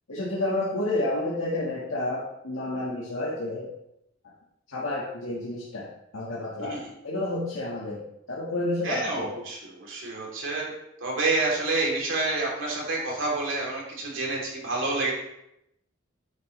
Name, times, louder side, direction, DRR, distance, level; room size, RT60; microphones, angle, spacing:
voice 1, 0.1-3.7 4.7-5.9 6.1-8.0 8.3-9.3, left 2 dB, 90° left, -6 dB, 1.7 m, -30 dB
voice 2, 8.8-10.7 11.0-15.1, right 2 dB, 70° right, -3 dB, 3.3 m, -28 dB
9.5 x 7.7 x 3.3 m, 0.83 s
head